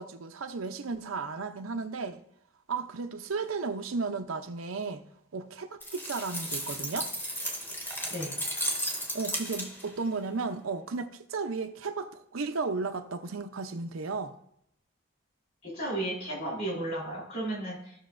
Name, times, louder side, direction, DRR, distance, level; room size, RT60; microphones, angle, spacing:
voice 1, 0.0-2.2 2.7-5.0 5.3-7.1 9.1-14.4, right 4 dB, 75° right, 0.6 m, -34 dB
sound 1, 5.8-10.0, equal, 10° left, 0.9 m, -34 dB
voice 2, 15.6-17.9, right 1 dB, 45° left, 3.8 m, -34 dB
15.0 x 6.3 x 2.5 m
head